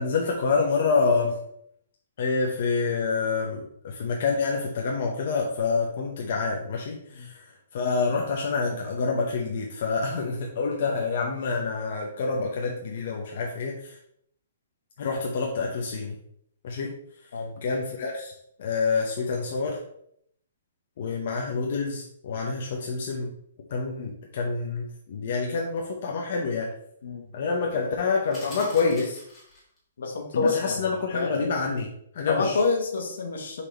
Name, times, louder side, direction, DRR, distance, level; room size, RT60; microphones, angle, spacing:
voice 1, 0.0-1.4 2.2-7.4 7.7-14.0 15.0-16.2 16.6-16.9 17.6-18.3 18.6-19.8 21.0-23.3 23.7-26.7 27.3-29.2 30.3-32.6, left 4 dB, 40° left, 0 dB, 0.8 m, -27 dB
sound 1, 28.3-29.8, left 1 dB, 10° left, 1.7 m, -44 dB
voice 2, 30.0-30.8 31.1-31.3 32.3-33.6, left 3 dB, 70° left, 3 dB, 1.3 m, -27 dB
5.2 x 4.2 x 4.3 m, 0.69 s
hypercardioid pair, 175°, 0 cm